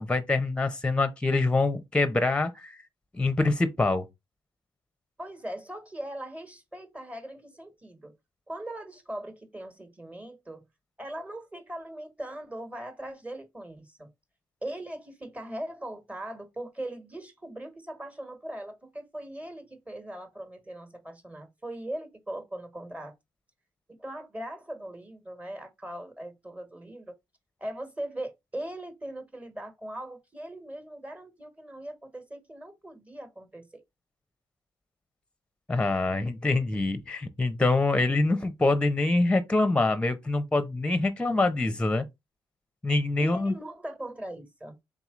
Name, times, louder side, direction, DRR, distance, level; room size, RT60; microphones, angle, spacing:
voice 1, 0.0-2.8 3.1-4.1 35.7-42.0 42.8-43.5, left 2 dB, 10° left, 0.7 m, -25 dB
voice 2, 5.2-8.1 8.5-10.7 11.0-14.1 14.6-23.1 24.0-27.1 27.6-33.8 43.2-44.8, right 1 dB, 15° right, 1.5 m, -40 dB
3.8 x 2.9 x 3.7 m
supercardioid pair, 60°, 9 cm